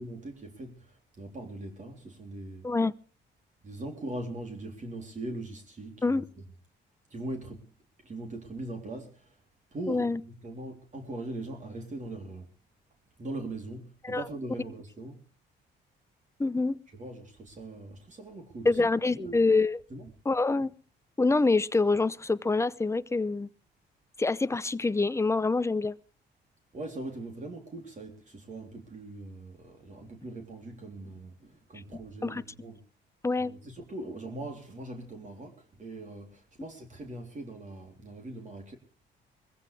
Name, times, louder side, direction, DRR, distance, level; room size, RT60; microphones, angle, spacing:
voice 1, 0.0-2.7 3.6-6.4 7.1-7.7 8.0-9.4 9.7-12.5 13.2-15.2 16.9-18.9 19.2-19.4 19.9-20.1 26.7-32.8 33.4-38.8, right 2 dB, 40° right, 3.7 m, -41 dB
voice 2, 9.9-10.2 14.0-14.2 16.4-16.8 18.6-19.8 20.3-20.7 21.2-23.5 24.2-25.9 32.2-32.4 33.2-33.5, left 3 dB, 15° left, 0.7 m, -26 dB
21.5 x 15.5 x 3.5 m
cardioid pair, 90°, 20 cm